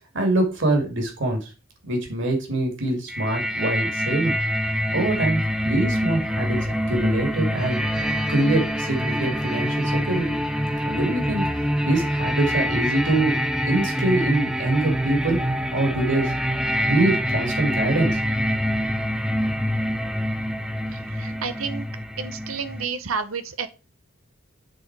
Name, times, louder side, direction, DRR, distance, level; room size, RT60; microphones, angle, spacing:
voice 1, 0.1-1.5 1.8-4.4 4.9-10.4 10.8-13.4 13.7-15.4 15.7-16.3 16.9-18.2, right 2 dB, 60° right, 2 dB, 2.3 m, -24 dB
sound 1, 3.1-22.8, equal, 5° right, 0.6 m, -25 dB
voice 2, 20.9-21.9 22.2-23.7, right 5 dB, 85° right, 10 dB, 0.9 m, -30 dB
7.8 x 3.8 x 4.6 m, 0.32 s
head